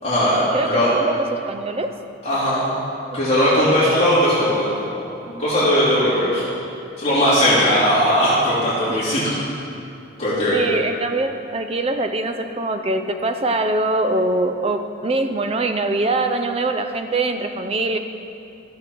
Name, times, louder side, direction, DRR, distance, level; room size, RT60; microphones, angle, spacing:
voice 1, 0.0-0.9 2.2-2.7 3.1-4.7 5.3-6.4 7.0-9.2 10.2-10.6, equal, 35° left, -11 dB, 2.9 m, -18 dB
voice 2, 0.5-1.9 8.9-9.2 10.5-18.0, right 2 dB, 30° right, 7 dB, 0.5 m, -23 dB
14.5 x 6.7 x 4.5 m, 2.7 s
head